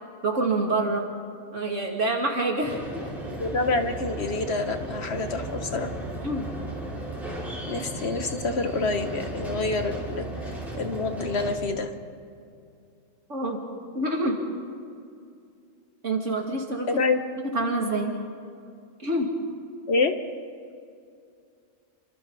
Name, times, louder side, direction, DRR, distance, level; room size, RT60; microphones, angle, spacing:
voice 1, 0.2-1.1 1.5-3.1 6.2-6.4 13.3-13.6 13.9-14.4 16.0-16.9 17.5-18.1 19.0-19.3, right 2 dB, 65° right, 0 dB, 3.1 m, -26 dB
sound 1, 2.6-11.6, right 1 dB, ahead, 5.7 m, -35 dB
voice 2, 3.3-5.9 7.7-10.2 10.8-11.9 16.9-17.2 19.9-20.1, left 3 dB, 55° left, 7 dB, 1.4 m, -27 dB
29.0 x 25.5 x 4.1 m, 2.4 s
omnidirectional pair, 1.3 m